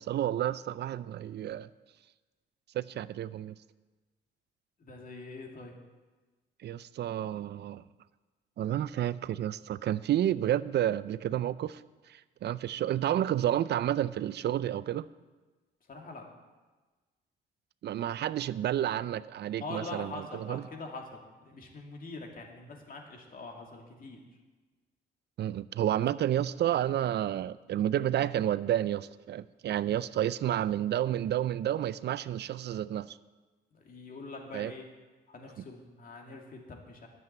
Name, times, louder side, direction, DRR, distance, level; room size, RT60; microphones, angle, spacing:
voice 1, 0.0-1.7 2.7-3.5 6.6-7.8 8.6-11.8 12.1-15.1 17.8-20.6 25.4-33.2 34.5-34.7 35.6-35.7, right 11 dB, 60° right, 17 dB, 0.5 m, -30 dB
voice 2, 4.8-5.8 15.9-16.2 19.6-21.0 21.4-24.2 33.7-34.9 35.3-37.1, left 3 dB, 45° left, 1 dB, 2.5 m, -44 dB
11.0 x 7.6 x 8.1 m, 1.3 s
cardioid pair, 90°, 20 cm